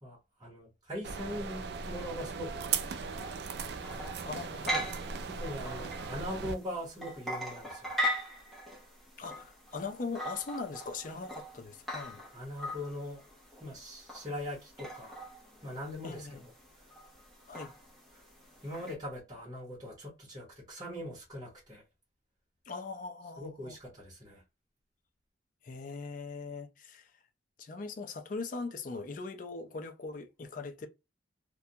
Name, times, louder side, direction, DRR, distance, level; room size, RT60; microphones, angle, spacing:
voice 1, 0.0-3.2 5.3-7.9 12.3-13.2 13.6-15.2 15.6-16.4 18.6-21.8 23.4-24.4, left 1 dB, 20° right, 1.0 m, -41 dB
sound 1, 1.0-6.5, right 6 dB, 60° right, 0.3 m, -38 dB
sound 2, 3.1-18.9, equal, ahead, 0.7 m, -41 dB
voice 2, 4.2-4.9 9.2-12.2 16.0-16.4 17.5-17.7 22.7-23.7 25.6-27.1 27.6-30.9, left 4 dB, 45° left, 0.4 m, -40 dB
2.4 x 2.2 x 2.7 m
head